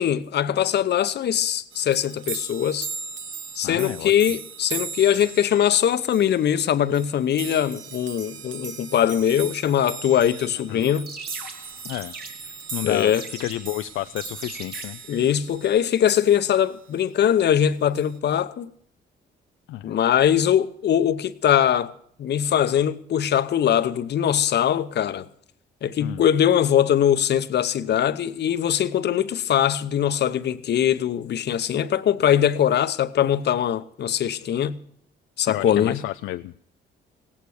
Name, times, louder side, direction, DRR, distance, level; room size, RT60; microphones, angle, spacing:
voice 1, 0.0-2.9 3.6-11.1 12.8-13.2 15.1-18.7 19.8-21.9 22.2-25.3 25.8-34.8 35.4-36.0, left 9 dB, 60° left, 0.8 m, -21 dB
sound 1, 1.7-16.7 18.0-18.2, right 5 dB, 70° right, 1.2 m, -38 dB
voice 2, 3.6-4.1 10.7-10.8 11.9-12.1 12.7-15.0 19.7-19.9 26.0-26.2 35.5-36.5, left 15 dB, 85° left, 0.4 m, -31 dB
sound 2, 10.7-15.7, right 3 dB, 50° right, 2.4 m, -41 dB
18.0 x 8.6 x 6.4 m
cardioid pair, 90°, 20 cm